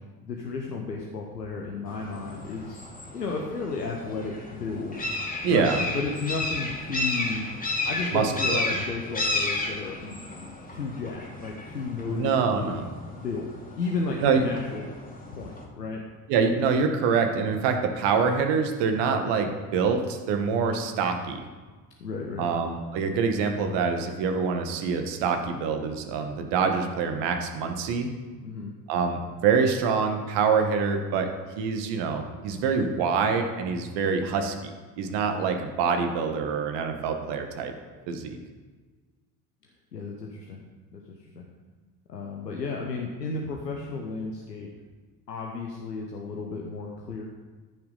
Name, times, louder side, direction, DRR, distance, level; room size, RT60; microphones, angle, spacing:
voice 1, 0.2-2.8 3.1-5.0 5.5-7.4 7.8-12.8 13.1-13.4 13.8-15.0 15.3-16.0 22.0-22.5 28.4-28.7 39.9-40.6 40.9-41.0 41.4-41.5 42.1-44.7 45.3-47.2, left 4 dB, 85° left, 0 dB, 0.9 m, -33 dB
sound 1, 1.9-15.6, left 2 dB, 15° left, 2.4 m, -33 dB
voice 2, 5.4-5.8 8.1-8.7 12.1-12.8 14.2-14.4 16.3-21.4 22.4-28.1 28.9-31.3 31.6-34.5 35.0-37.7 38.1-38.4, right 5 dB, 55° right, 6 dB, 1.4 m, -25 dB
14.0 x 5.8 x 4.0 m, 1.4 s
figure-of-eight pair, 55°, 48 cm